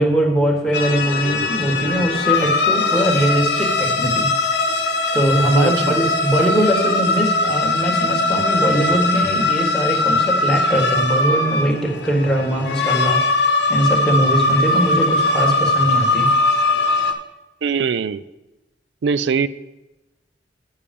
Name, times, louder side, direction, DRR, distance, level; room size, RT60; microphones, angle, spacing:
voice 1, 0.0-4.3 5.1-16.3, right 1 dB, 5° left, -1 dB, 1.6 m, -21 dB
sound 1, 0.7-17.1, left 3 dB, 65° left, 0.9 m, -20 dB
voice 2, 5.5-6.0 17.6-18.2 19.0-19.5, right 6 dB, 75° right, 16 dB, 0.4 m, -21 dB
8.7 x 6.6 x 5.3 m, 1.0 s
head